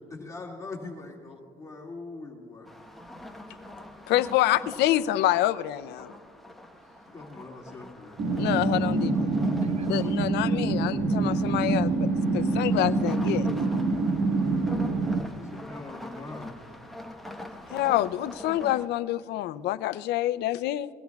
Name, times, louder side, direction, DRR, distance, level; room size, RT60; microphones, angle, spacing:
voice 1, 0.1-2.7 7.1-8.2 15.3-16.6, left 3 dB, 20° left, -2 dB, 2.1 m, -42 dB
sound 1, 2.6-18.9, left 1 dB, ahead, 1.1 m, -44 dB
voice 2, 4.1-6.1 8.4-9.3 9.8-13.6 17.7-20.9, left 14 dB, 80° left, 15 dB, 0.5 m, -27 dB
sound 2, 8.2-15.2, right 3 dB, 60° right, 1.3 m, -26 dB
voice 3, 14.3-15.5 17.3-17.8, right 5 dB, 40° right, 11 dB, 0.8 m, -58 dB
22.0 x 17.0 x 2.3 m, 2.3 s
cardioid pair, 110°, 17 cm